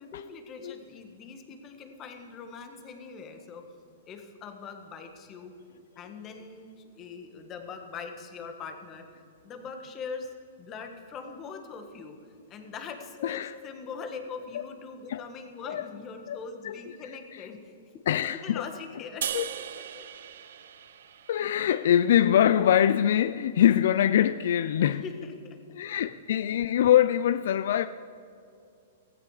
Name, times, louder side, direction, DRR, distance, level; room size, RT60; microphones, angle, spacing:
voice 1, 0.0-3.6 4.1-5.5 5.9-9.1 9.4-10.3 10.6-12.2 12.5-17.7 18.2-19.3 19.9-20.0 25.0-25.6, left 5 dB, 25° left, 1.5 m, -41 dB
voice 2, 13.2-13.5 14.5-14.7 15.1-15.2 15.7-15.9 16.3-16.8 17.3-17.4 18.1-18.7 19.3-19.5 21.3-25.0 25.7-27.9, left 10 dB, 65° left, 0.4 m, -24 dB
sound 1, 19.2-22.5, right 9 dB, 75° right, 0.9 m, -38 dB
16.5 x 15.5 x 4.9 m
hypercardioid pair, 160°, 0 cm